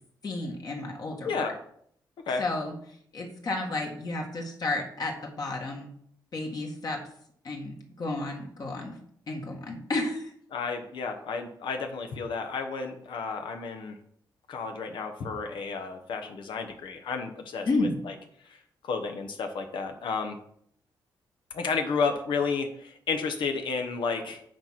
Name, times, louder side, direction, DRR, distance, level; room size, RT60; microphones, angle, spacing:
voice 1, 0.2-1.5 2.4-2.7 3.1-5.9 6.3-7.0 7.4-9.0 9.3-10.3 17.7-17.9, left 2 dB, 50° left, 1 dB, 1.8 m, -32 dB
voice 2, 10.5-14.0 14.5-18.1 18.5-20.3 21.5-24.4, left 5 dB, 80° left, 5 dB, 1.1 m, -32 dB
8.7 x 4.5 x 5.8 m, 0.66 s
cardioid pair, 110°, 8 cm